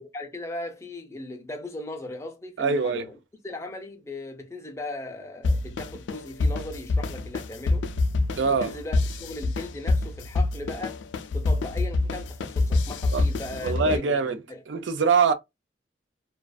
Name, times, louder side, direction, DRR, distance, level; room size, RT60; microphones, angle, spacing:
voice 1, 0.1-3.2 3.4-7.8 8.5-11.0 11.3-14.6, left 2 dB, 15° left, 0.5 m, -38 dB
voice 2, 2.6-3.1 8.4-8.8 13.1-13.2 13.6-14.4 14.7-15.3, right 5 dB, 85° right, 0.4 m, -23 dB
sound 1, 5.4-14.0, left 2 dB, 85° left, 0.4 m, -26 dB
2.4 x 2.3 x 2.3 m
head